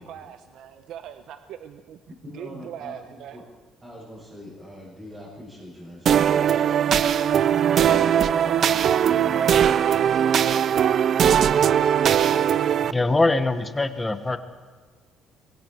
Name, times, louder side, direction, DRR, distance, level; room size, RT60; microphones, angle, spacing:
voice 1, 0.0-2.0 2.3-3.4, right 10 dB, 65° right, 9 dB, 1.0 m, -40 dB
voice 2, 2.1-3.4 3.8-9.9, left 1 dB, 15° right, -8 dB, 7.8 m, -43 dB
sound 1, 6.1-12.9, right 9 dB, 45° right, 0.5 m, -20 dB
voice 3, 12.9-14.4, left 2 dB, 15° left, 9 dB, 1.3 m, -22 dB
25.5 x 22.5 x 4.7 m, 1.5 s
cardioid pair, 145°, 0 cm